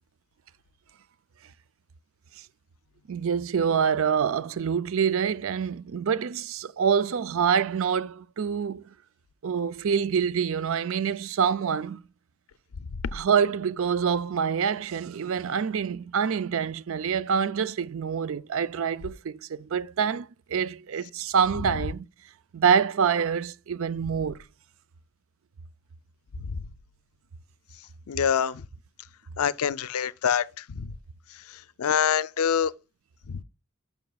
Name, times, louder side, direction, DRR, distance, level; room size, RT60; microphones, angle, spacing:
voice 1, 3.1-8.8 9.4-12.0 13.1-22.1 22.5-24.4, right 7 dB, 70° right, 0.4 m, -26 dB
voice 2, 28.1-28.6 29.4-30.9 31.8-32.7 33.3-33.4, left 8 dB, 85° left, 0.4 m, -25 dB
11.5 x 6.0 x 2.3 m
head